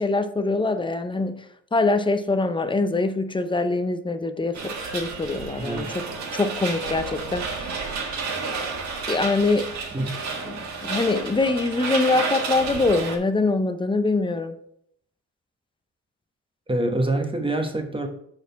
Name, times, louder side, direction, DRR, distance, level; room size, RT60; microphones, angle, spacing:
voice 1, 0.0-1.4 1.7-6.1 6.3-7.9 9.1-9.7 10.5-14.6, left 3 dB, 15° left, 0.6 m, -24 dB
sound 1, 4.5-13.2, right 4 dB, 65° right, 1.7 m, -31 dB
voice 2, 5.6-6.0 9.9-10.1 16.7-18.1, right 1 dB, 15° right, 1.2 m, -25 dB
6.6 x 5.0 x 4.6 m
cardioid pair, 90°, 30 cm